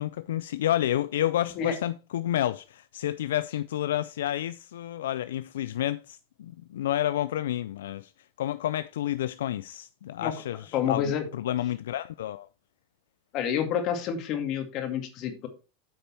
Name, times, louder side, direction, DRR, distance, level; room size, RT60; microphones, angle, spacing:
voice 1, 0.0-8.1 8.4-12.5, left 12 dB, 85° left, 0.3 m, -30 dB
voice 2, 10.7-11.2 13.3-15.5, left 8 dB, 50° left, 2.2 m, -28 dB
8.8 x 5.2 x 4.4 m
hypercardioid pair, 105°, 0 cm